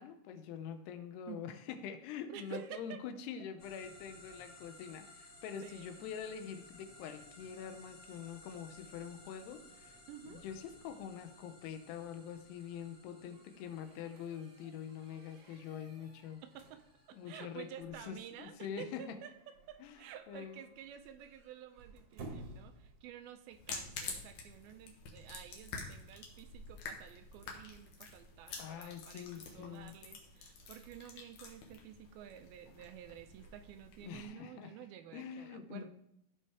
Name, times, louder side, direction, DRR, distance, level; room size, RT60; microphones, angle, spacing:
voice 1, 0.0-10.0 10.2-16.4 17.1-19.2 19.8-20.0 20.3-20.6 28.6-30.0 34.0-34.7 35.1-35.9, left 8 dB, 90° left, 9 dB, 2.9 m, -45 dB
voice 2, 2.3-3.0 5.6-6.0 10.1-10.4 16.4-16.8 17.1-35.9, right 10 dB, 80° right, 9 dB, 2.3 m, -51 dB
sound 1, 3.6-17.8, left 1 dB, 40° left, 1.4 m, -59 dB
sound 2, 8.5-23.5, right 2 dB, 55° right, 1.8 m, -57 dB
sound 3, 23.5-34.2, left 4 dB, 60° left, 2.6 m, -48 dB
16.0 x 5.5 x 3.5 m, 0.78 s
omnidirectional pair, 4.6 m